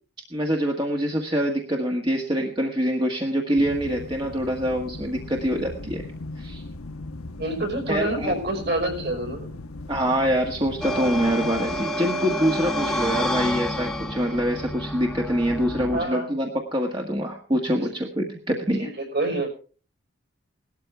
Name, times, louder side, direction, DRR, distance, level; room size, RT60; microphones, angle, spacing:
voice 1, 0.3-6.1 6.4-6.6 7.9-8.3 9.9-18.9, equal, 20° right, 1 dB, 1.7 m, -25 dB
sound 1, 3.6-11.9, left 2 dB, 85° left, 1.2 m, -38 dB
voice 2, 7.4-9.5 15.9-16.3 17.8-17.9 18.8-19.5, right 1 dB, 50° right, 4 dB, 5.4 m, -27 dB
sound 2, 10.8-16.1, equal, 5° left, 1.6 m, -29 dB
18.5 x 13.0 x 3.4 m, 0.39 s
head